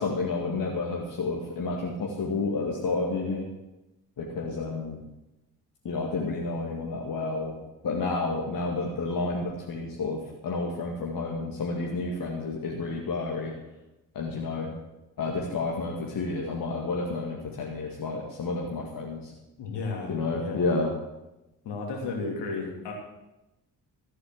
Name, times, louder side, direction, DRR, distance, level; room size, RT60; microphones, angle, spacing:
voice 1, 0.0-3.5 4.2-5.0 5.8-7.5 7.8-13.5 14.1-14.7 15.2-19.3 20.1-20.9, left 3 dB, 45° left, -1 dB, 2.2 m, -30 dB
voice 2, 19.6-20.7 21.6-22.9, left 3 dB, 60° left, 1 dB, 3.0 m, -33 dB
14.0 x 8.1 x 7.4 m, 0.97 s
figure-of-eight pair, 40°, 47 cm